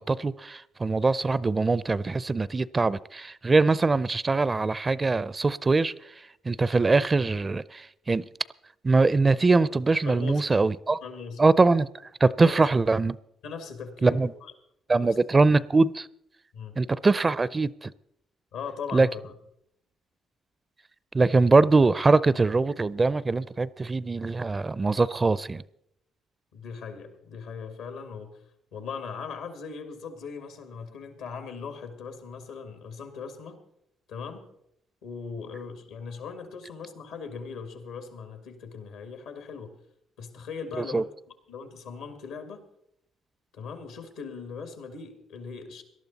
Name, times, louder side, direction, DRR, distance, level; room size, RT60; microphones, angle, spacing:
voice 1, 0.0-8.2 8.8-11.0 11.4-11.9 12.2-13.2 14.0-14.3 14.9-16.1 16.8-17.9 18.9-19.1 21.1-25.6 40.8-41.0, right 3 dB, 30° right, 0.5 m, -22 dB
voice 2, 10.0-10.4 11.0-11.5 12.4-12.6 13.4-14.5 15.0-15.2 16.5-16.8 18.5-19.3 26.5-28.4 28.7-33.6 34.1-34.5 35.0-39.7 40.2-41.1 41.5-42.7 43.5-45.8, left 5 dB, 85° left, 2.1 m, -39 dB
19.0 x 12.0 x 4.1 m
supercardioid pair, 65°, 0 cm